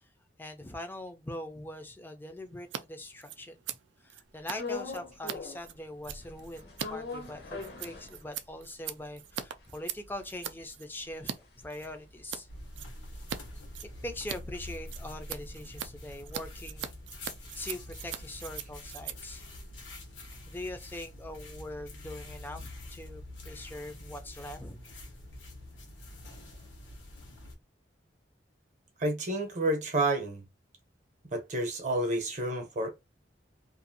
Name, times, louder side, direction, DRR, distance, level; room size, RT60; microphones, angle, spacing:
voice 1, 0.4-3.8 4.0-11.3 11.6-12.5 14.0-16.9 17.5-19.5 20.5-24.8, left 1 dB, 10° left, 0.4 m, -42 dB
Scissors, 2.6-2.8 3.1-11.4 11.7-12.4 12.7-13.4 13.7-20.5, right 9 dB, 85° right, 0.4 m, -41 dB
sound 1, 4.5-5.7 6.0-8.6 9.0-9.1 9.3-13.8 14.1-18.2, left 3 dB, 60° left, 0.8 m, -43 dB
sound 2, 12.5-27.6, left 1 dB, 90° left, 1.1 m, -46 dB
voice 2, 29.0-30.4 31.3-32.9, right 1 dB, 40° right, 0.8 m, -30 dB
2.6 x 2.4 x 2.6 m
head